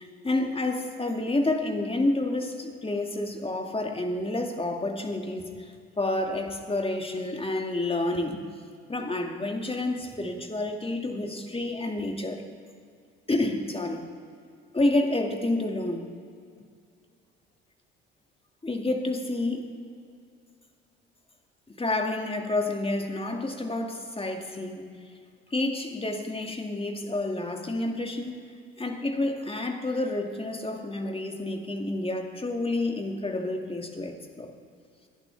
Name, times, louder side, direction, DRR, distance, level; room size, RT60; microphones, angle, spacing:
voice 1, 0.0-8.5 8.9-12.4 13.3-14.0 14.7-16.1 18.6-19.7 21.7-24.8 25.5-28.5 28.8-34.5, left 2 dB, 15° left, 3 dB, 2.1 m, -29 dB
27.5 x 11.5 x 3.4 m, 2.2 s
hypercardioid pair, 55°, 32 cm